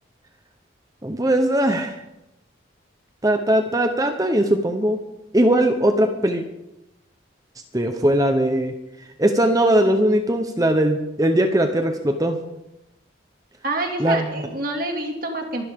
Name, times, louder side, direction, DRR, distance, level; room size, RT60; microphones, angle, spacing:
voice 1, 1.0-2.0 3.2-5.0 5.3-6.4 7.7-8.7 9.2-12.4 14.0-14.3, right 1 dB, 20° right, 6 dB, 1.0 m, -20 dB
voice 2, 13.6-15.7, right 2 dB, 50° right, 3 dB, 2.5 m, -27 dB
25.0 x 11.5 x 3.7 m, 0.88 s
head